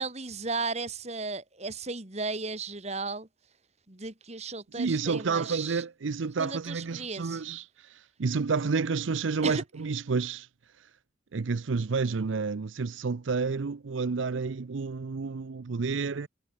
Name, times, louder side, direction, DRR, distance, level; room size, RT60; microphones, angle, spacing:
voice 1, 0.0-3.3 3.9-5.8 6.4-7.4 9.4-9.6, right 3 dB, 35° right, 2.3 m, -35 dB
voice 2, 4.7-10.5 10.8-10.9 11.3-16.3, right 4 dB, 85° right, 0.6 m, -30 dB
head